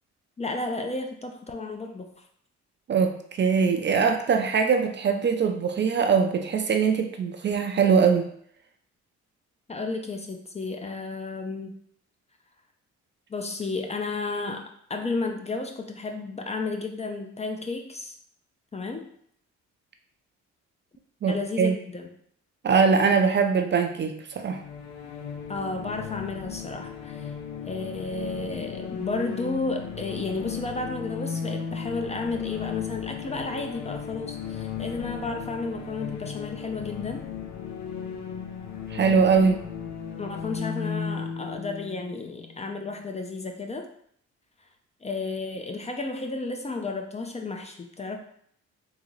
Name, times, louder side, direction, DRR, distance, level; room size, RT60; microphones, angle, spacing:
voice 1, 0.4-2.1 9.7-11.8 13.3-18.2 18.7-19.1 21.3-22.1 25.5-27.3 27.7-37.2 40.2-43.9 45.0-48.2, left 3 dB, 20° left, 4 dB, 0.4 m, -32 dB
voice 2, 2.9-8.3 21.2-21.7 22.6-24.6 38.9-39.6, right 5 dB, 40° right, 5 dB, 0.4 m, -22 dB
sound 1, 24.4-43.0, left 7 dB, 70° left, 0.6 m, -36 dB
3.7 x 2.7 x 3.0 m, 0.65 s
cardioid pair, 90°, 30 cm